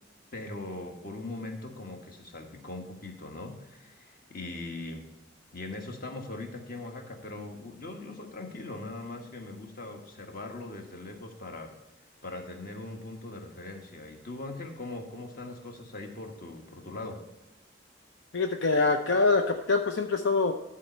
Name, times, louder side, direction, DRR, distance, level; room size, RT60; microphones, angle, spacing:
voice 1, 0.3-5.1 5.5-11.7 12.2-17.2, left 2 dB, 50° left, 3 dB, 1.4 m, -40 dB
voice 2, 18.3-20.5, left 3 dB, 75° left, 6 dB, 0.6 m, -24 dB
11.0 x 4.2 x 6.7 m, 0.98 s
head